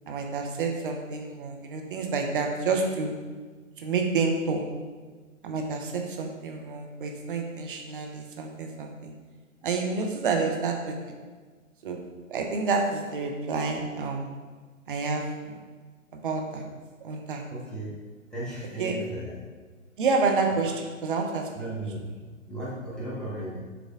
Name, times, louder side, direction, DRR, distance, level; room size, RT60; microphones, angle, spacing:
voice 1, 0.1-3.1 3.8-4.6 5.4-9.1 9.6-11.0 11.8-12.0 12.3-14.3 14.9-15.6 16.1-16.6 17.0-17.4 18.8-19.0 20.0-21.5, right 4 dB, 40° right, 3 dB, 0.8 m, -29 dB
voice 2, 17.5-17.9 18.3-19.4 21.5-23.6, right 1 dB, ahead, -9 dB, 1.1 m, -36 dB
6.9 x 3.7 x 3.7 m, 1.4 s
hypercardioid pair, 140°, 41 cm